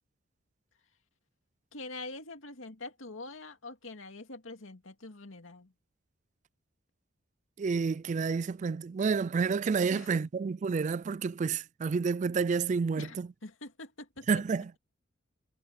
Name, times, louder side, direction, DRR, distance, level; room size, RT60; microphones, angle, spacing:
voice 1, 1.7-5.7 9.9-10.3 13.0-13.2 13.4-14.4, left 2 dB, 85° left, 2.3 m, -44 dB
voice 2, 7.6-13.3 14.3-14.7, right 5 dB, 35° right, 0.3 m, -29 dB
head